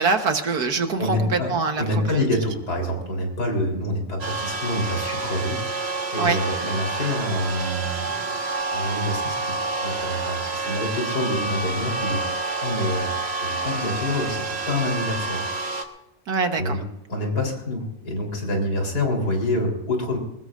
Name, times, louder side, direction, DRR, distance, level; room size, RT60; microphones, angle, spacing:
voice 1, 0.0-2.2 6.2-6.4 16.3-16.8, right 4 dB, 60° right, 6 dB, 1.6 m, -24 dB
voice 2, 1.0-1.5 1.8-8.2 8.7-13.1 13.4-15.4 16.6-16.8 17.1-20.2, left 1 dB, 60° left, 2 dB, 4.2 m, -27 dB
sound 1, 4.2-15.8, right 3 dB, 35° right, 1.6 m, -28 dB
sound 2, 6.4-14.4, right 1 dB, 15° left, 3.3 m, -47 dB
21.0 x 20.0 x 2.5 m, 0.91 s
omnidirectional pair, 1.9 m